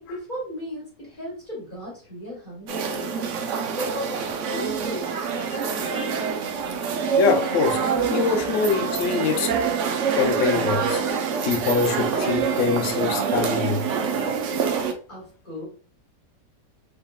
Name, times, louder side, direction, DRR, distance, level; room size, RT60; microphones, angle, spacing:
voice 1, 0.0-6.3 15.1-15.7, equal, 30° left, 1.3 m, -36 dB
sound 1, 2.7-14.9, right 6 dB, 75° right, 0.7 m, -26 dB
voice 2, 7.2-9.6 10.1-11.1 11.5-13.8, left 5 dB, 70° left, 0.7 m, -24 dB
3.6 x 3.5 x 2.2 m
omnidirectional pair, 1.9 m